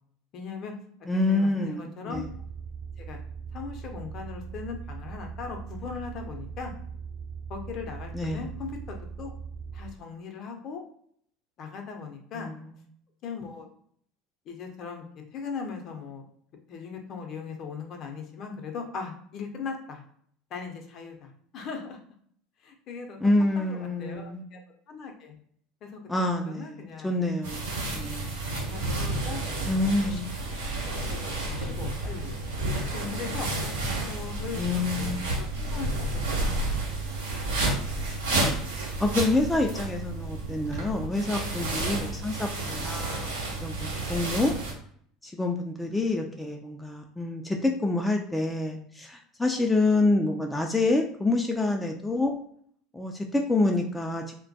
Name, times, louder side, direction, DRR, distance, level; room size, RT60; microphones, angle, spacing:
voice 1, 0.3-0.7 1.3-2.2 3.0-3.2 3.5-6.7 7.5-9.3 9.7-10.8 11.6-12.5 13.2-13.7 14.5-15.0 15.3-16.2 16.7-20.0 20.5-22.0 22.6-23.2 23.6-24.6 24.9-25.4 25.8-27.1 28.6-30.2 30.8-32.4 32.9-33.5 34.1-36.9, left 5 dB, 50° left, 3 dB, 0.6 m, -39 dB
voice 2, 1.1-2.3 8.1-8.4 12.3-12.6 23.2-24.4 26.1-28.4 29.7-30.4 34.6-35.2 39.0-43.3 43.6-44.5 45.2-52.3 52.9-54.3, left 2 dB, 10° left, 2 dB, 0.3 m, -27 dB
sound 1, 2.1-9.9, right 6 dB, 40° right, 0.9 m, -40 dB
sound 2, 27.4-44.7, right 2 dB, 80° right, 0.7 m, -31 dB
2.2 x 2.2 x 2.6 m, 0.63 s
hypercardioid pair, 75°, 0 cm